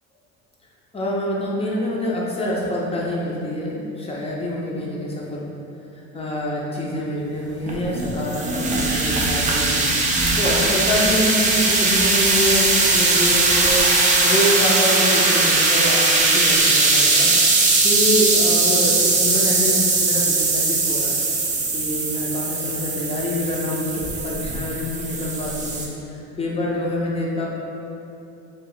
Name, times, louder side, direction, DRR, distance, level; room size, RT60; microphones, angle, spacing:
voice 1, 0.9-5.5 5.9-9.8 10.4-13.9 14.2-17.3 17.8-21.2 21.7-27.5, left 1 dB, 20° left, -4 dB, 0.6 m, -26 dB
sound 1, 7.7-25.9, right 3 dB, 25° right, 0.4 m, -19 dB
2.6 x 2.2 x 3.8 m, 2.8 s
supercardioid pair, 90°, 30 cm